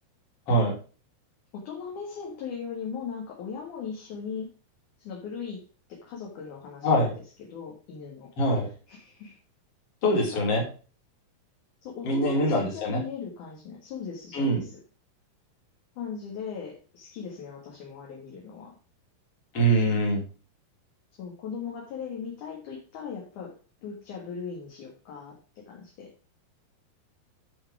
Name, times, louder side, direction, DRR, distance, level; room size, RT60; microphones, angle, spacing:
voice 1, 1.5-4.5 5.0-5.6 5.9-7.0 7.5-8.3 8.9-9.4 10.1-10.4 11.8-14.8 16.0-18.7 21.2-23.6 23.8-26.1, left 6 dB, 55° left, -1 dB, 2.7 m, -38 dB
voice 2, 6.8-7.1 8.4-8.7 10.0-10.6 12.0-13.0 14.3-14.6 19.5-20.2, right 1 dB, 40° left, -1 dB, 3.3 m, -23 dB
11.0 x 4.7 x 4.8 m, 0.38 s
omnidirectional pair, 4.9 m